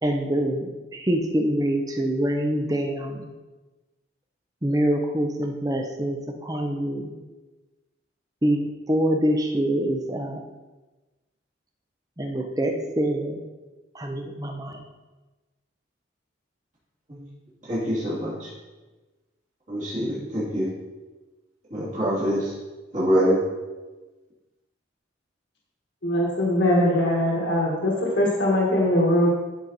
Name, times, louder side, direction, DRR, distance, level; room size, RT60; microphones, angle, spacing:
voice 1, 0.0-3.3 4.6-7.1 8.4-10.4 12.2-13.4 13.9-14.9, right 1 dB, 20° right, 3 dB, 0.7 m, -25 dB
voice 2, 17.7-18.5 19.7-20.7 21.7-22.5 22.9-23.4, equal, 40° right, -8 dB, 2.6 m, -24 dB
voice 3, 26.0-29.3, left 1 dB, 65° left, -3 dB, 1.6 m, -21 dB
13.0 x 4.5 x 4.1 m, 1.2 s
head